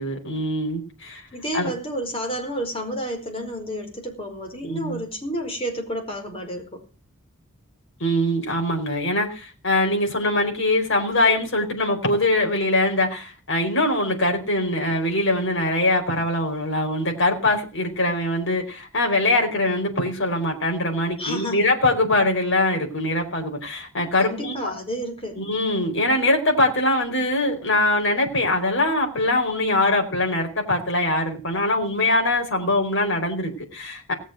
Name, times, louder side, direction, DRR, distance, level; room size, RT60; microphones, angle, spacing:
voice 1, 0.0-1.2 1.5-1.7 4.6-5.0 8.0-24.7 25.4-34.1, left 1 dB, 60° left, 4.7 m, -22 dB
voice 2, 1.3-6.8 21.2-21.6 24.2-25.4, equal, 25° left, 4.8 m, -30 dB
19.0 x 7.2 x 7.8 m
head